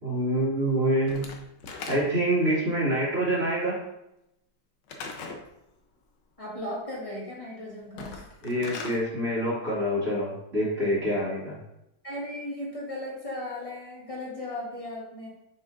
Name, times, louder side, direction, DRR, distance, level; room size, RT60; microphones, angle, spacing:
voice 1, 0.0-1.2 1.9-3.8 8.4-11.6, right 1 dB, 40° right, -8 dB, 2.9 m, -26 dB
Slam / Wood, 1.1-2.4 4.9-5.5 7.8-9.0, left 4 dB, 65° left, 1.4 m, -39 dB
voice 2, 6.4-8.3 12.0-15.3, left 1 dB, 15° left, -6 dB, 1.9 m, -36 dB
7.3 x 6.0 x 2.6 m, 0.84 s
omnidirectional pair, 2.2 m